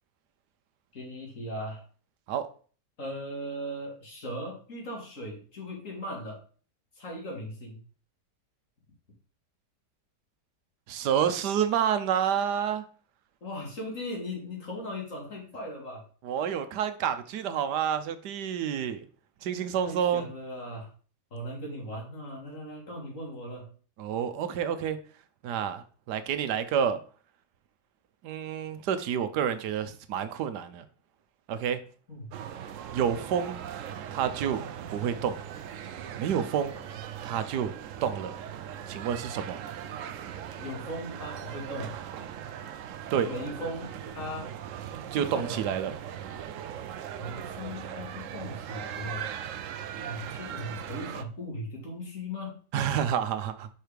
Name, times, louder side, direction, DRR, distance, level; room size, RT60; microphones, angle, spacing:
voice 1, 0.9-1.8 3.0-6.4 7.0-7.8 13.4-16.0 19.8-20.9 21.3-23.7 32.1-32.3 40.6-41.9 43.2-44.5 45.1-45.6 47.2-49.3 50.0-52.6, equal, 50° left, 2.5 m, -38 dB
voice 2, 10.9-12.8 16.2-19.1 19.4-20.3 24.0-25.0 25.4-27.0 28.2-30.9 31.5-31.8 32.9-33.6 34.1-34.6 34.9-35.4 36.2-36.7 37.2-37.7 38.0-38.3 38.9-39.6 43.1-43.3 45.1-45.9 52.7-53.7, right 8 dB, 85° right, 1.3 m, -29 dB
sound 1, 32.3-51.2, right 9 dB, 65° right, 0.8 m, -39 dB
5.6 x 4.6 x 5.0 m
omnidirectional pair, 1.7 m